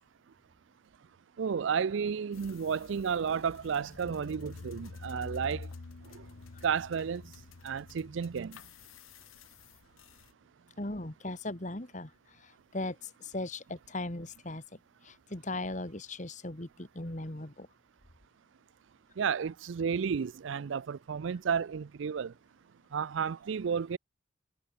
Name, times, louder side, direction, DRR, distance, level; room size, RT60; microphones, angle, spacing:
voice 1, 1.4-5.7 6.1-6.3 6.6-7.3 7.6-8.6 19.2-22.3 22.9-24.0, right 6 dB, 70° right, 0.4 m, -32 dB
sound 1, 2.3-10.3, left 3 dB, 85° left, 0.7 m, -48 dB
voice 2, 10.8-17.7, left 2 dB, 35° left, 2.0 m, -38 dB
head